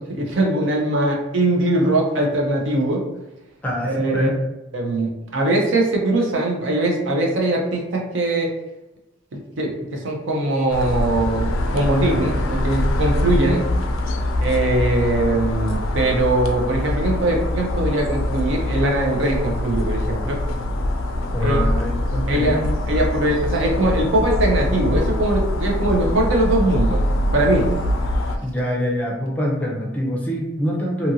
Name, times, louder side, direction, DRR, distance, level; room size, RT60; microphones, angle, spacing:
voice 1, 0.2-3.0 3.8-4.3 4.7-8.5 9.3-13.6 14.4-20.4 21.4-21.6 22.3-27.0 27.3-27.7, right 2 dB, 65° right, 0 dB, 0.6 m, -21 dB
voice 2, 3.6-4.4 21.3-22.7 28.4-31.1, equal, 10° left, -3 dB, 0.5 m, -24 dB
sound 1, 10.7-28.4, left 1 dB, 80° left, 0.4 m, -23 dB
2.8 x 2.5 x 2.7 m, 0.99 s
head